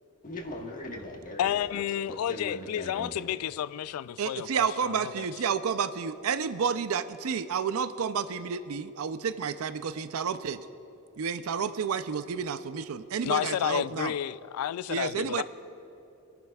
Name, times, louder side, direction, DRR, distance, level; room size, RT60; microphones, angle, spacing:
voice 1, 0.2-3.3, left 1 dB, 40° left, 1.5 m, -40 dB
voice 2, 1.4-5.3 13.2-15.4, left 10 dB, 85° left, 0.3 m, -31 dB
voice 3, 4.2-10.6 11.2-14.1 14.9-15.4, right 6 dB, 75° right, 0.5 m, -30 dB
27.5 x 11.0 x 2.3 m
head